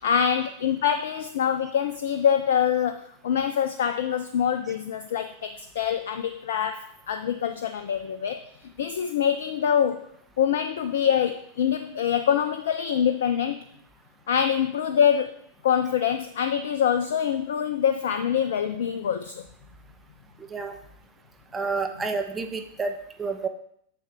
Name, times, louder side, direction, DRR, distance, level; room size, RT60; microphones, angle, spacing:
voice 1, 0.0-10.1 10.4-13.6 14.3-15.4 15.6-19.4, left 8 dB, 60° left, 10 dB, 0.4 m, -25 dB
voice 2, 21.5-22.9 23.2-23.5, right 4 dB, 15° right, 5 dB, 0.9 m, -29 dB
8.8 x 6.7 x 3.5 m, 0.69 s
figure-of-eight pair, 90°, 0 cm